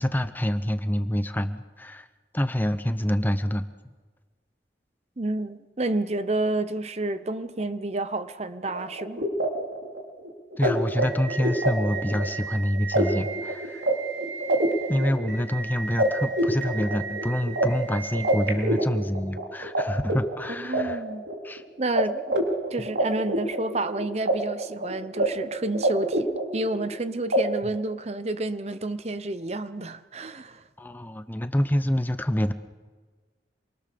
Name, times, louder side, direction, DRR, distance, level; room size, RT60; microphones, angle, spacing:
voice 1, 0.0-2.1 2.3-3.7 10.6-13.9 14.9-21.0 21.4-21.6 30.8-32.5, equal, 10° left, 0.8 m, -27 dB
voice 2, 5.2-9.3 20.6-21.2 21.8-22.3 22.7-30.6, right 2 dB, 35° right, 0.8 m, -30 dB
sound 1, 8.7-19.8 20.1-21.6 22.0-22.1 22.3-24.3 24.6-25.3 25.5-26.9 27.3-27.4, right 1 dB, 80° right, 3.8 m, -27 dB
27.5 x 23.0 x 6.8 m
head